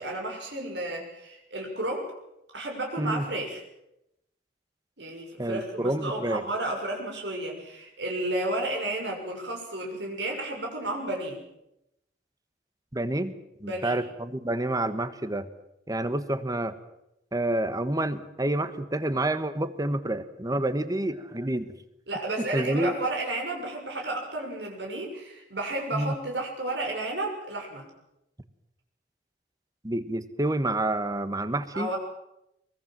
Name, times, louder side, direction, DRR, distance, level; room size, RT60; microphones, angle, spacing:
voice 1, 0.0-2.1 2.5-3.6 5.0-11.4 13.6-14.0 22.1-27.9 31.7-32.0, right 2 dB, 80° right, 1 dB, 6.6 m, -32 dB
voice 2, 5.4-6.4 12.9-13.3 13.6-15.5 15.9-16.7 17.3-21.7 22.5-22.9 25.9-26.1 29.8-31.9, right 1 dB, 20° right, 12 dB, 1.4 m, -28 dB
23.0 x 21.5 x 7.6 m, 0.84 s
head